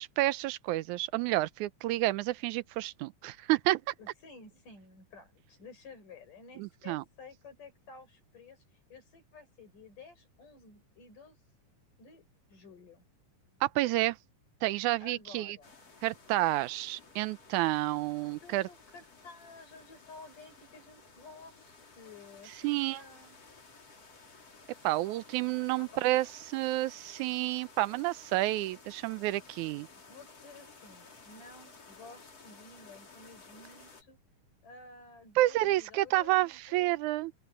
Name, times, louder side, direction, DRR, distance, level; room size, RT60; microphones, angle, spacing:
voice 1, 0.0-3.9 6.6-7.0 13.6-14.2 14.6-15.6 16.0-18.6 22.6-23.0 24.8-29.9 35.4-37.3, right 17 dB, 80° right, 2.0 m, -30 dB
voice 2, 4.0-8.6 8.9-11.4 12.0-13.1 15.0-15.9 18.2-23.4 25.8-25.9 30.0-34.2 34.6-37.0, left 3 dB, 80° left, 8.6 m, -53 dB
sound 1, 15.6-34.0, left 4 dB, 50° left, 6.0 m, -55 dB
open air
omnidirectional pair, 3.6 m